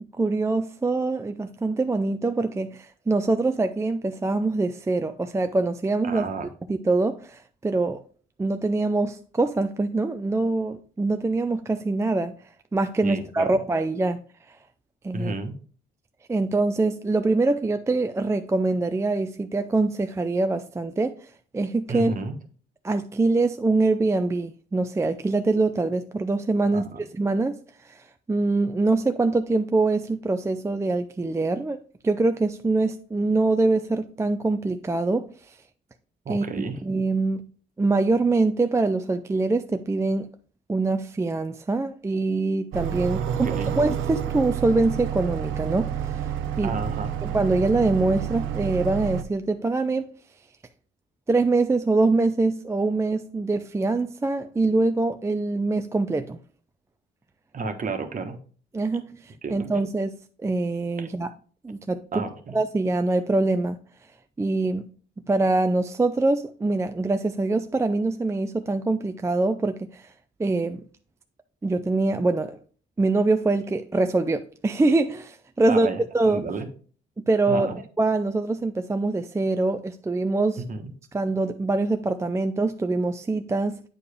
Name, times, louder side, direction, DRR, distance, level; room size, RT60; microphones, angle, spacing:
voice 1, 0.2-6.3 6.7-8.0 8.4-12.4 12.7-14.2 14.5-14.6 15.0-15.3 16.3-21.3 21.5-22.1 22.8-27.6 27.8-35.6 36.3-37.5 37.8-40.3 40.7-43.2 43.8-46.3 46.6-46.7 47.2-50.1 51.3-56.4 58.7-60.1 60.4-61.3 61.6-62.3 62.5-63.8 64.4-64.9 65.3-70.1 70.4-70.8 71.6-72.6 73.0-75.9 76.1-76.5 77.3-77.7 78.0-80.6 81.1-83.8, right 3 dB, 15° right, 0.4 m, -24 dB
voice 2, 6.0-6.5 13.0-13.6 15.1-15.6 21.9-22.4 26.7-27.0 36.2-36.8 43.2-43.8 46.6-47.1 57.5-58.4 59.4-59.7 61.0-61.1 62.1-62.6 75.7-76.7 77.5-77.8 80.7-80.9, right 3 dB, 40° right, 1.3 m, -31 dB
sound 1, 42.7-49.2, right 10 dB, 80° right, 0.6 m, -29 dB
8.5 x 4.8 x 3.4 m
cardioid pair, 90°, 20 cm